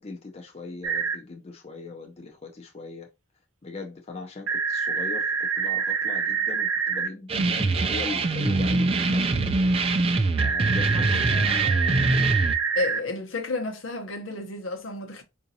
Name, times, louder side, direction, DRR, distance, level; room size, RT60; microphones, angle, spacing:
voice 1, 0.0-3.1 3.6-7.3 7.6-9.5 10.4-11.7, left 3 dB, 30° left, 0.5 m, -39 dB
sound 1, 0.8-1.2 4.5-7.1 10.4-13.0, right 6 dB, 85° right, 0.6 m, -26 dB
voice 2, 7.3-7.7 10.9-12.0 12.8-15.2, left 2 dB, 70° left, 0.9 m, -33 dB
sound 2, 7.3-12.5, right 3 dB, 30° right, 0.3 m, -23 dB
4.9 x 2.6 x 2.7 m
head